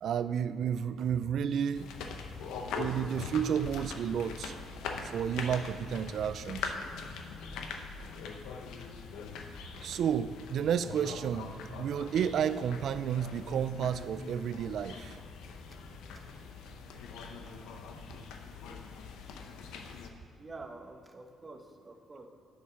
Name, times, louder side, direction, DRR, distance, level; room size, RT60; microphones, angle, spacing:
voice 1, 0.0-1.9 2.7-4.6 5.0-6.8 9.8-11.5 11.8-15.2, right 8 dB, 70° right, 13 dB, 0.3 m, -31 dB
sound 1, 1.7-20.1, left 5 dB, 90° left, 0.8 m, -42 dB
voice 2, 20.4-22.3, right 3 dB, 25° right, 5 dB, 1.1 m, -47 dB
8.6 x 7.6 x 5.8 m, 2.4 s
cardioid pair, 90°, 0 cm